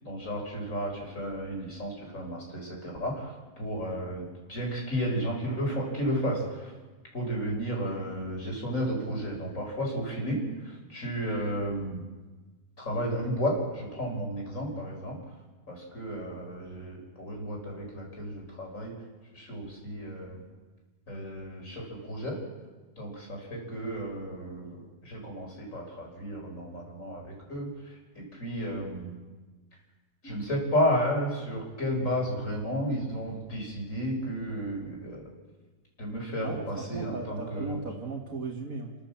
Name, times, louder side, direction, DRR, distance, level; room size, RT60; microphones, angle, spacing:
voice 1, 0.0-6.7 7.1-12.0 12.8-15.2 15.7-18.9 19.3-20.4 21.1-22.4 23.0-29.2 30.2-35.3 36.0-37.9, equal, 70° left, 0 dB, 5.5 m, -33 dB
voice 2, 36.4-38.9, right 3 dB, 75° right, -1 dB, 2.4 m, -37 dB
30.0 x 12.0 x 7.3 m, 1.3 s
omnidirectional pair, 1.4 m